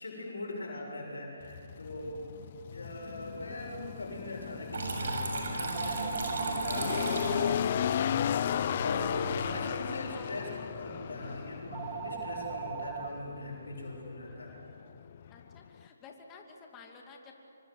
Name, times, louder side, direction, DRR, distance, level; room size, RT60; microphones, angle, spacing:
voice 1, 0.0-2.2 2.7-7.8 8.8-14.5, left 1 dB, 80° left, -1 dB, 6.8 m, -40 dB
sound 1, 1.4-15.9, left 9 dB, 40° left, 0.6 m, -35 dB
sound 2, 2.8-13.1, right 6 dB, 20° right, 1.7 m, -43 dB
Water tap faucet / Trickle dribble, 4.7-9.7, right 3 dB, 60° right, 6.8 m, -36 dB
voice 2, 15.3-17.3, left 5 dB, 20° left, 1 dB, 2.6 m, -51 dB
25.5 x 24.5 x 8.1 m, 2.8 s
figure-of-eight pair, 150°, 0 cm